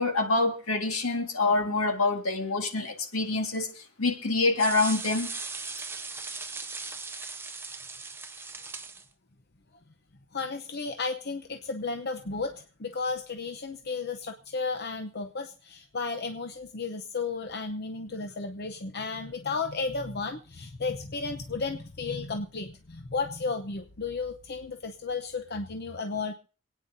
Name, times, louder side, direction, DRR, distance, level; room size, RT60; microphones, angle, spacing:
voice 1, 0.0-5.3, left 3 dB, 75° left, 1.9 m, -26 dB
sound 1, 4.6-9.0, right 4 dB, 10° right, 0.6 m, -38 dB
voice 2, 10.3-26.3, left 4 dB, 50° left, 0.8 m, -33 dB
26.5 x 9.4 x 2.7 m
head